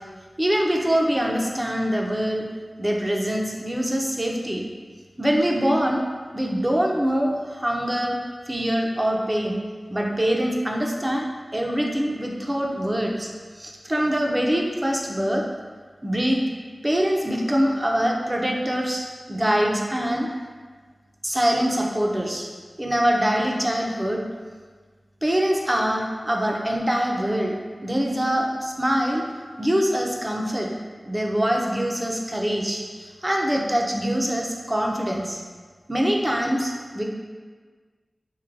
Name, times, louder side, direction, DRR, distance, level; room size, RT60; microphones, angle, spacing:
voice 1, 0.4-2.4 2.8-4.7 5.2-6.0 6.3-8.2 8.5-9.6 9.9-13.3 13.6-15.4 16.0-16.4 16.8-20.3 21.2-22.5 22.8-24.2 25.2-27.6 27.8-29.2 29.6-30.7 31.1-35.4 35.9-37.0, equal, 20° right, 0 dB, 0.5 m, -24 dB
4.6 x 2.7 x 2.5 m, 1.5 s
wide cardioid pair, 60°, 0 cm